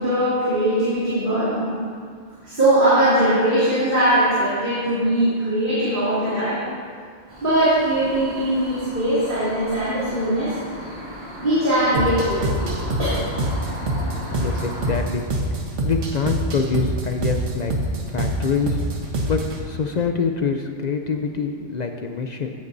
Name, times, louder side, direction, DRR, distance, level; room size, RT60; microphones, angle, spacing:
voice 1, 0.0-1.7 2.4-6.6 7.4-10.5 11.4-13.1, right 1 dB, 45° right, -12 dB, 2.6 m, -20 dB
sound 1, 7.3-14.9, equal, 20° right, 3.0 m, -36 dB
sound 2, 11.9-19.6, right 1 dB, 80° right, 1.4 m, -26 dB
voice 2, 14.2-15.3 15.8-17.7 18.1-18.8 19.3-22.5, left 5 dB, 55° left, 5 dB, 0.4 m, -25 dB
15.5 x 8.5 x 2.6 m, 2.1 s
omnidirectional pair, 1.2 m